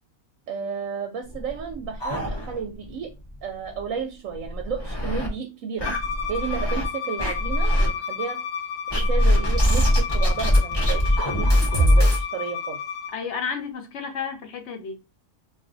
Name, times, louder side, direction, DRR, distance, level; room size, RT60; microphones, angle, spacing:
voice 1, 0.5-3.1 3.4-5.9 6.3-8.4 8.9-12.8, right 6 dB, 75° right, 0.9 m, -32 dB
sound 1, 1.3-2.9 3.2-3.3 3.7-3.8 4.4-5.3 5.8-6.8 7.2-7.9 8.9-12.2, equal, 25° left, 0.6 m, -21 dB
Bowed string instrument, 5.8-13.1, left 7 dB, 80° left, 0.4 m, -32 dB
voice 2, 13.1-15.0, left 6 dB, 60° left, 0.9 m, -31 dB
2.5 x 2.4 x 3.7 m
omnidirectional pair, 1.5 m